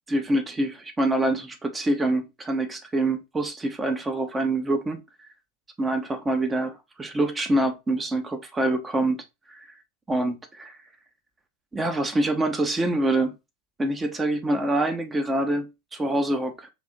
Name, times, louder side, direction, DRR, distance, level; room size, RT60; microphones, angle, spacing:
voice 1, 0.1-5.0 5.8-9.7 10.1-10.8 11.7-13.4 13.8-16.7, right 1 dB, 15° right, 0.8 m, -25 dB
4.8 x 2.8 x 2.6 m
figure-of-eight pair, 85°, 0 cm